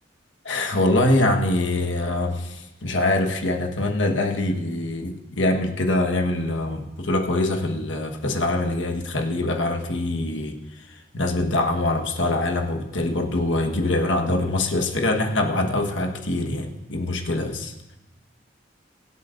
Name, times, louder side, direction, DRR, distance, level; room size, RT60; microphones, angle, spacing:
voice 1, 0.4-17.7, left 2 dB, 85° left, 4 dB, 1.3 m, -24 dB
23.5 x 8.2 x 2.6 m, 0.97 s
head